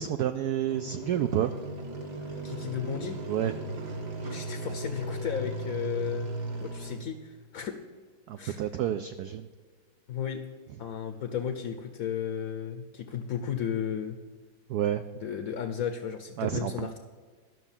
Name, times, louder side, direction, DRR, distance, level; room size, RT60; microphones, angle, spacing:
voice 1, 0.0-1.5 3.3-3.7 8.3-9.5 14.7-15.0 16.4-16.9, right 10 dB, 85° right, 9 dB, 0.8 m, -29 dB
sound 1, 0.7-6.9, right 1 dB, 55° right, 2.1 m, -36 dB
voice 2, 2.4-3.2 4.3-6.3 6.6-7.8 8.4-8.6 10.1-10.4 10.8-14.2 15.2-17.0, left 8 dB, 60° left, 5 dB, 0.9 m, -34 dB
12.5 x 6.1 x 7.3 m, 1.5 s
omnidirectional pair, 2.2 m